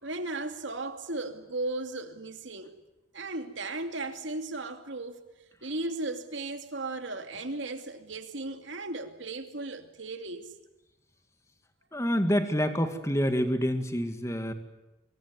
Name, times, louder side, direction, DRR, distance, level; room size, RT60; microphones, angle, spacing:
voice 1, 0.0-2.7 3.1-5.2 5.6-10.5, right 2 dB, 80° right, 2.6 m, -36 dB
voice 2, 11.9-14.5, equal, 15° left, 2.1 m, -27 dB
25.5 x 22.5 x 9.5 m
head